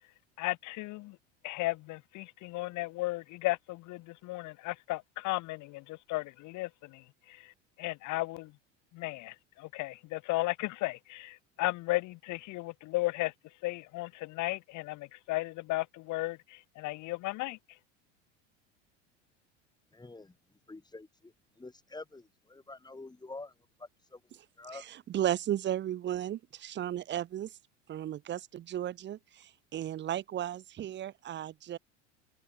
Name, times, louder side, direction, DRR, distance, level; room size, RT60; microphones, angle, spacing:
voice 1, 0.4-1.2 1.4-7.5 7.8-8.5 8.9-13.3 13.6-17.6, left 20 dB, 50° left, 1.9 m, -35 dB
voice 2, 19.9-20.4 20.7-24.9, left 2 dB, 10° left, 4.9 m, -48 dB
voice 3, 24.7-27.5 27.9-31.8, right 11 dB, 30° right, 0.8 m, -35 dB
hypercardioid pair, 80°, 37 cm